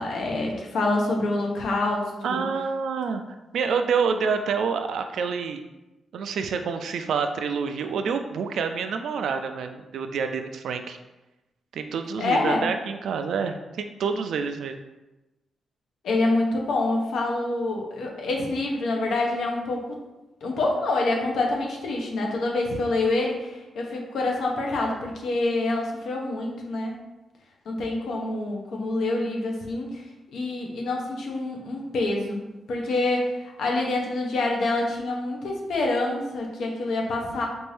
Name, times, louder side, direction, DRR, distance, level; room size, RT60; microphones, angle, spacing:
voice 1, 0.0-2.4 12.2-12.7 16.0-20.0 20.4-26.9 27.7-30.0 30.3-32.4 32.7-37.5, left 2 dB, 75° left, 0 dB, 0.8 m, -26 dB
voice 2, 2.2-3.2 3.5-5.6 6.1-11.0 11.7-14.8, right 5 dB, 75° right, 7 dB, 0.3 m, -27 dB
4.3 x 2.6 x 3.3 m, 1.0 s
wide cardioid pair, 175°, 0 cm